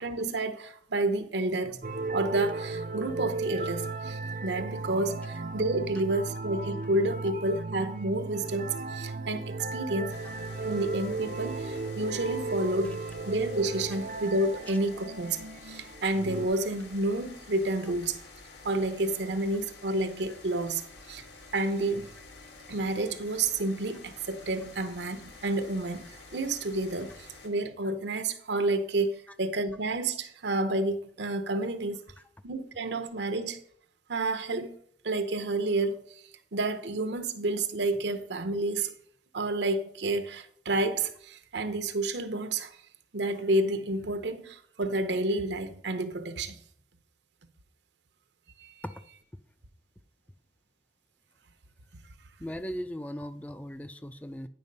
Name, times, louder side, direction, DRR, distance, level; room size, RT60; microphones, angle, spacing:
voice 1, 0.0-10.2 10.6-13.0 13.3-15.4 15.7-18.2 18.6-20.8 21.1-21.2 21.5-22.1 22.7-27.1 27.4-32.0 32.4-33.6 34.1-34.8 35.0-36.0 36.5-38.9 39.3-42.7 43.1-46.6 48.6-48.8, right 2 dB, 75° right, 0.8 m, -30 dB
sound 1, 1.8-16.5, right 3 dB, 50° right, 0.6 m, -35 dB
sound 2, 10.1-27.5, left 3 dB, 80° left, 1.8 m, -50 dB
voice 2, 52.4-54.5, equal, 10° left, 0.3 m, -38 dB
9.6 x 4.7 x 5.3 m
head